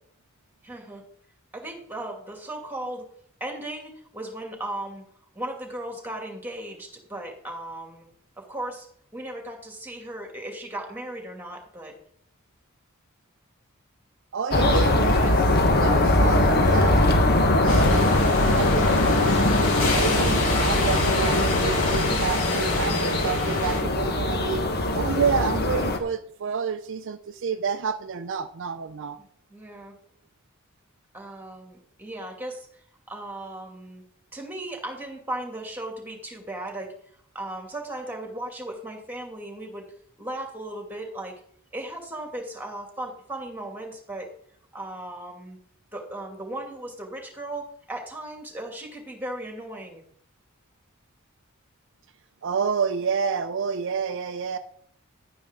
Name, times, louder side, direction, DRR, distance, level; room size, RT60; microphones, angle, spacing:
voice 1, 0.6-1.0 1.5-3.1 3.4-5.0 5.3-8.1 8.4-8.9 9.1-11.9 29.2-29.9 31.1-34.0 34.3-36.9 37.3-39.8 40.2-41.3 41.7-44.3 44.7-45.6 45.9-50.0, right 1 dB, 10° right, 2 dB, 2.5 m, -36 dB
voice 2, 14.3-17.2 17.6-24.6 24.9-29.2 52.4-54.6, right 6 dB, 60° right, 9 dB, 0.5 m, -29 dB
sound 1, 14.5-26.0, left 1 dB, 50° left, 1.3 m, -21 dB
sound 2, 17.7-23.8, left 3 dB, 65° left, 4.6 m, -29 dB
11.0 x 9.4 x 3.8 m, 0.64 s
head